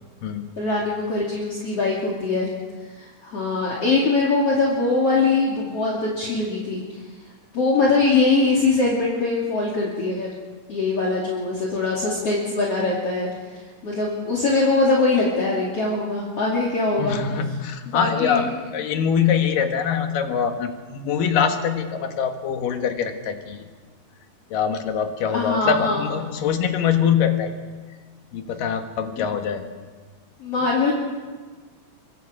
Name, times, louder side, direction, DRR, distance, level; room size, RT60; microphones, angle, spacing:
voice 1, 0.6-2.5 3.0-6.8 7.5-10.3 10.7-13.3 13.8-17.2 17.9-18.5 25.3-26.1 29.2-29.3 30.4-30.9, left 3 dB, 45° left, -4 dB, 3.4 m, -22 dB
voice 2, 17.0-23.7 24.5-27.5 28.3-29.6, left 7 dB, 80° left, 6 dB, 3.2 m, -23 dB
24.0 x 23.0 x 5.0 m, 1.4 s
omnidirectional pair, 3.8 m